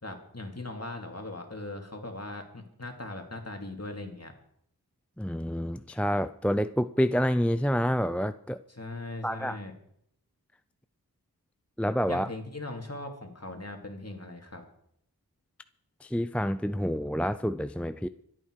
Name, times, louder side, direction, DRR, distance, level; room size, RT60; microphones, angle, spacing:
voice 1, 0.0-4.3 8.7-9.7 12.1-14.7, left 2 dB, 40° left, 2.8 m, -39 dB
voice 2, 5.2-8.6 9.2-9.6 11.8-12.3 16.0-18.1, equal, 5° left, 0.5 m, -28 dB
25.0 x 9.1 x 4.8 m
wide cardioid pair, 40°, 38 cm